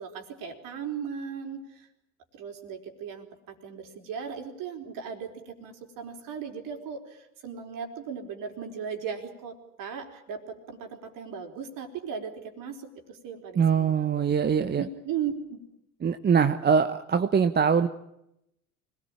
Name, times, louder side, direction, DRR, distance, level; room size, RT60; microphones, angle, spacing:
voice 1, 0.0-1.9 2.3-14.3 14.8-15.6, right 7 dB, 50° right, 5 dB, 4.5 m, -37 dB
voice 2, 13.6-14.8 16.0-17.9, right 6 dB, 25° right, 9 dB, 1.1 m, -23 dB
25.5 x 19.0 x 9.0 m, 0.83 s
figure-of-eight pair, 70°, 41 cm